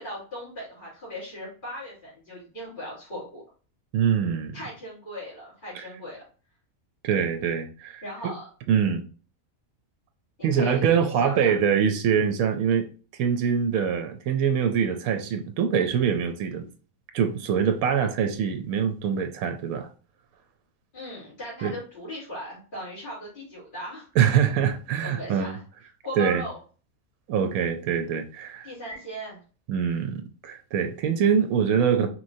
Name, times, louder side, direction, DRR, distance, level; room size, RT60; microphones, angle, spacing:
voice 1, 0.0-3.4 4.5-6.2 8.0-8.5 10.4-10.9 11.2-11.5 20.9-24.1 25.0-25.6 26.0-26.6 28.6-29.4, equal, 35° left, 2.5 m, -38 dB
voice 2, 3.9-4.5 5.7-5.8 7.0-8.0 8.7-9.0 10.4-12.9 13.2-16.6 17.1-19.9 21.6-21.7 24.2-25.6 26.2-26.4 27.3-28.7 29.7-32.1, right 7 dB, 80° right, 1.0 m, -24 dB
4.4 x 3.0 x 2.6 m
omnidirectional pair, 1.5 m